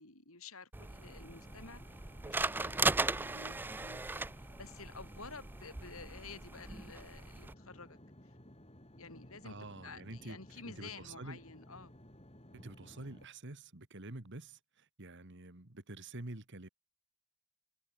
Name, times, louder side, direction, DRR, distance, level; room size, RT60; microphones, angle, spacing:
voice 1, 0.0-8.0 8.2-8.3 9.0-12.0, left 4 dB, 75° left, 5.5 m, -52 dB
sound 1, 0.7-7.5, right 3 dB, 10° right, 0.3 m, -38 dB
sound 2, 1.0-13.3, equal, 30° left, 5.7 m, -57 dB
voice 2, 9.4-10.4 10.7-11.4 12.5-16.7, right 2 dB, 55° right, 2.0 m, -47 dB
head